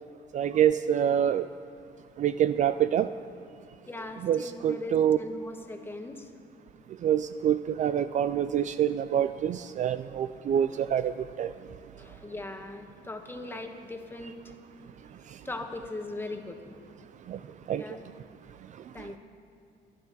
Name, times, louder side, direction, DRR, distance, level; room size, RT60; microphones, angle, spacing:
voice 1, 0.3-1.5 2.2-3.1 4.2-5.2 7.0-11.5 17.3-17.4 17.7-17.8, right 10 dB, 45° right, 12 dB, 0.4 m, -26 dB
voice 2, 3.9-6.3 11.9-14.5 15.4-16.8 17.7-18.0 18.9-19.2, left 2 dB, 15° left, 4 dB, 1.3 m, -40 dB
24.0 x 9.4 x 4.1 m, 2.6 s
cardioid pair, 110°, 17 cm